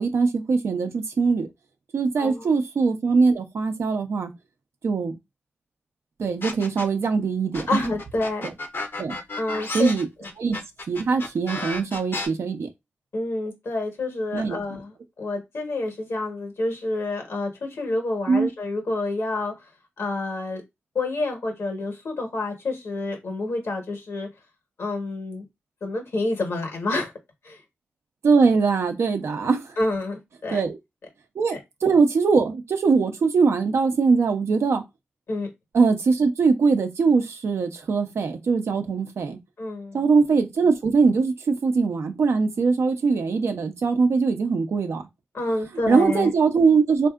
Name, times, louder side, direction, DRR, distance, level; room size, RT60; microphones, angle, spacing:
voice 1, 0.0-1.5 1.9-4.3 4.8-5.2 6.2-7.8 8.4-8.5 9.0-9.2 9.7-10.1 10.4-10.6 10.9-12.7 14.3-14.6 18.3-18.5 28.2-29.8 30.5-30.8 31.3-34.8 35.7-39.4 39.9-45.0 45.9-47.1, right 4 dB, 90° right, 0.6 m, -21 dB
sound 1, 6.4-7.1 7.5-12.3, left 2 dB, 60° left, 0.7 m, -32 dB
voice 2, 7.7-8.4 9.4-9.9 10.2-10.3 13.1-19.5 20.0-20.6 20.9-24.3 24.8-25.5 25.8-27.1 27.4-27.6 29.8-30.6 31.5-31.6 35.3-35.5 39.6-40.0 45.3-46.3, left 2 dB, 80° left, 1.1 m, -28 dB
3.6 x 2.6 x 2.3 m
cardioid pair, 60°, 4 cm